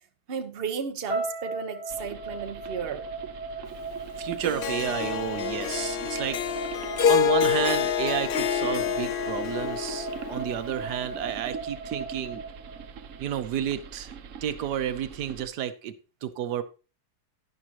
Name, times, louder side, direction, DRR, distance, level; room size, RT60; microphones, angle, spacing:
voice 1, 0.3-3.0, right 6 dB, 40° right, 7 dB, 1.1 m, -34 dB
sound 1, 1.1-13.2, right 3 dB, 35° left, 5.0 m, -37 dB
sound 2, 1.9-15.5, right 7 dB, 60° right, 1.0 m, -43 dB
voice 2, 4.2-6.4 7.1-12.4 13.2-14.1 14.4-15.9 16.2-16.6, right 10 dB, 85° right, 11 dB, 1.4 m, -31 dB
Harp, 4.4-10.8, left 9 dB, 75° left, 0.5 m, -27 dB
11.0 x 10.5 x 2.9 m, 0.33 s
omnidirectional pair, 1.7 m